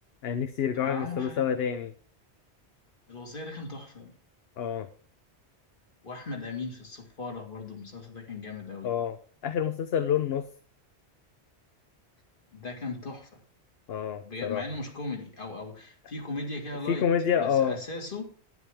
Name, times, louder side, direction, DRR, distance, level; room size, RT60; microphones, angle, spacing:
voice 1, 0.2-1.9 4.6-4.9 8.8-9.2 9.4-10.4 13.9-14.6 16.9-17.8, left 8 dB, 65° left, 9 dB, 0.9 m, -27 dB
voice 2, 0.8-1.5 3.1-4.1 6.0-8.9 12.5-13.4 14.2-17.1 17.4-18.3, left 3 dB, 50° left, 2 dB, 2.2 m, -38 dB
10.5 x 10.0 x 3.5 m, 0.42 s
omnidirectional pair, 1.1 m